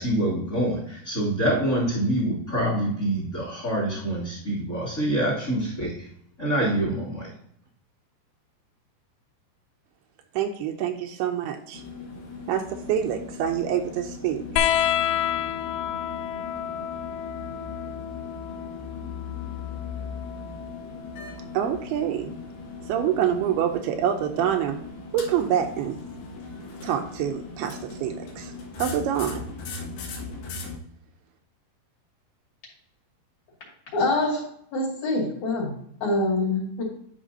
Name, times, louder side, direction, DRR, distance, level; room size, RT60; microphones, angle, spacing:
voice 1, 0.0-6.1 6.4-7.3, right 1 dB, 25° left, -5 dB, 2.1 m, -26 dB
voice 2, 10.3-11.8 12.5-14.4 21.5-22.4 22.9-24.8 25.1-26.0 26.8-28.5 28.8-29.4, right 9 dB, 80° right, 5 dB, 2.5 m, -26 dB
sound 1, 11.7-30.8, left 4 dB, 65° left, 2.9 m, -39 dB
sound 2, 14.6-21.6 23.0-23.8 25.1-25.2, left 10 dB, 85° left, 2.7 m, -30 dB
voice 3, 33.9-34.4 34.7-35.7 36.0-36.8, left 2 dB, 50° left, -5 dB, 3.6 m, -25 dB
11.0 x 5.6 x 2.7 m, 0.70 s
omnidirectional pair, 4.8 m